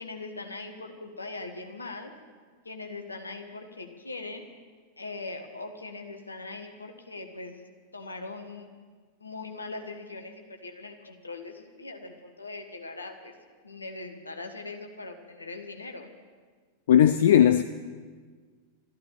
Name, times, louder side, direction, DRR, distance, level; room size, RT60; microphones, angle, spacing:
voice 1, 0.0-2.1 2.6-4.5 5.0-7.5 7.9-8.7 9.2-13.3 13.6-16.1, left 3 dB, 80° left, 1.6 m, -40 dB
voice 2, 16.9-17.6, left 10 dB, 60° left, 0.4 m, -17 dB
14.0 x 11.5 x 8.9 m
figure-of-eight pair, 90°, 0 cm